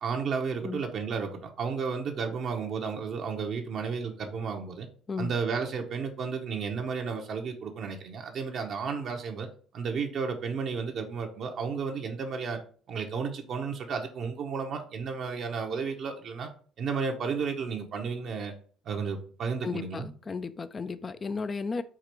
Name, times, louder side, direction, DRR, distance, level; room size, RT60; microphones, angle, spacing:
voice 1, 0.0-4.9 5.2-9.5 9.7-12.6 12.9-16.5 16.8-18.5 18.8-20.1, right 5 dB, 55° right, 0.7 m, -32 dB
voice 2, 19.6-21.8, left 4 dB, 30° left, 0.3 m, -34 dB
4.7 x 2.5 x 4.4 m
cardioid pair, 105°, 0 cm